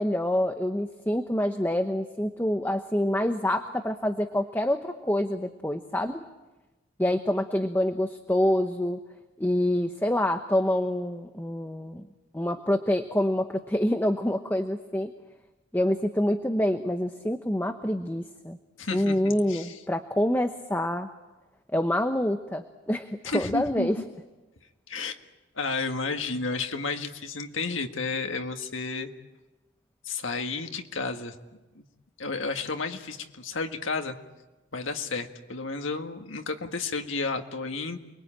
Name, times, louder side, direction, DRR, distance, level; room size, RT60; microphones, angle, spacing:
voice 1, 0.0-6.2 7.0-9.0 9.4-12.0 12.3-15.1 15.7-18.6 18.9-21.1 21.7-24.0, left 1 dB, 10° left, 6 dB, 0.9 m, -26 dB
voice 2, 18.8-19.8 23.2-23.9 24.9-25.2 25.6-29.1 30.0-31.4 31.8-31.9 32.2-34.2 34.7-38.0, left 3 dB, 85° left, 6 dB, 1.9 m, -32 dB
29.0 x 22.0 x 9.0 m, 1.1 s
head